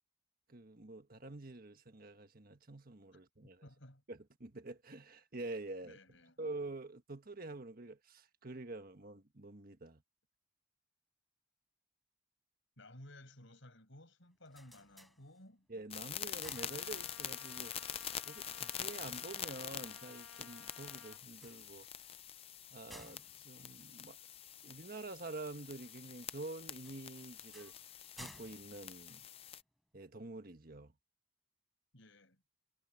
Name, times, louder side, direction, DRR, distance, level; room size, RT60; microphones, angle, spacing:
voice 1, 0.5-3.6 4.1-6.0 6.4-10.0 15.7-22.1 22.7-24.2 24.6-27.7 28.2-29.2 29.9-30.9, right 2 dB, 45° right, 1.5 m, -47 dB
voice 2, 3.6-4.0 5.8-6.4 12.8-15.7 31.9-32.4, left 1 dB, 65° left, 7.1 m, -56 dB
sound 1, 14.2-15.7 16.1-17.4 21.2-24.7 26.8-29.8, equal, ahead, 4.5 m, -59 dB
sound 2, 15.9-29.6, left 9 dB, 30° left, 0.5 m, -46 dB
Trumpet, 16.5-21.2, left 4 dB, 80° left, 1.6 m, -58 dB
head